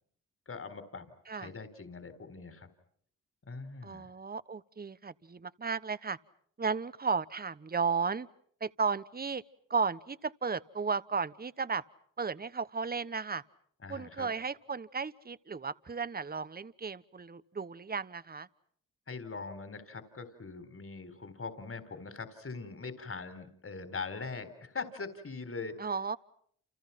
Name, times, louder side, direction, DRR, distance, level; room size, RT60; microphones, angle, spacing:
voice 1, 0.5-1.1 1.3-2.7 3.4-4.1 13.8-14.3 19.1-25.9, left 4 dB, 40° left, 10 dB, 4.2 m, -42 dB
voice 2, 3.8-6.2 6.6-8.3 8.6-9.4 9.7-11.8 12.2-13.4 13.9-18.5 25.8-26.2, right 5 dB, 30° right, 16 dB, 1.1 m, -34 dB
29.5 x 29.0 x 5.9 m, 0.65 s
supercardioid pair, 45°, 33 cm